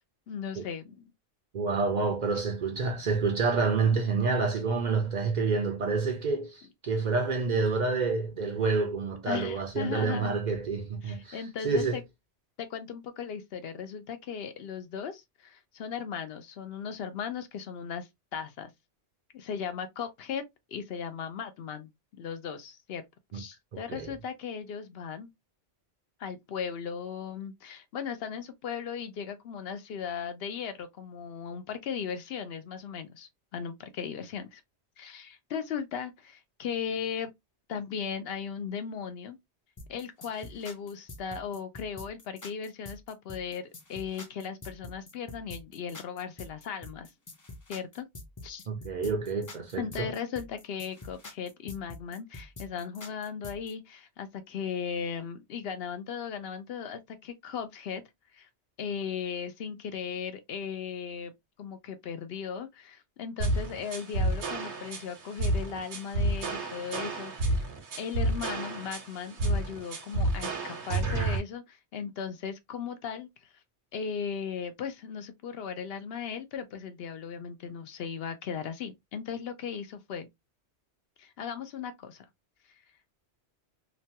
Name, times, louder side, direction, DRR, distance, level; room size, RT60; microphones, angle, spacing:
voice 1, 0.3-1.1 2.3-2.5 3.8-4.2 9.3-10.3 11.0-12.0 12.6-18.7 19.3-20.4 20.7-21.9 22.2-23.0 23.3-25.3 26.2-34.6 35.0-37.3 37.7-39.4 39.9-47.1 47.7-48.1 48.4-48.6 49.8-58.0 58.3-58.5 58.8-61.3 61.6-67.7 68.0-73.5 73.9-80.3 81.2-82.2, left 7 dB, 70° left, 0.7 m, -37 dB
voice 2, 1.5-12.0 23.3-23.4 23.7-24.1 48.7-50.1, right 4 dB, 55° right, 0.6 m, -28 dB
sound 1, 39.8-53.7, left 2 dB, 30° left, 0.4 m, -46 dB
sound 2, 63.4-71.4, right 2 dB, 80° right, 1.2 m, -30 dB
2.9 x 2.2 x 2.7 m
omnidirectional pair, 1.1 m